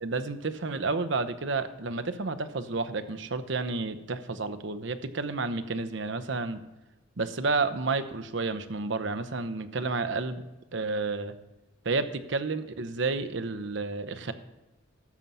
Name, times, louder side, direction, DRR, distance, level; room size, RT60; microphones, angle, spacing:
voice 1, 0.0-6.6 7.2-10.4 10.7-11.3 11.8-14.3, right 3 dB, 65° right, 11 dB, 0.8 m, -31 dB
13.0 x 7.3 x 5.5 m, 1.1 s
head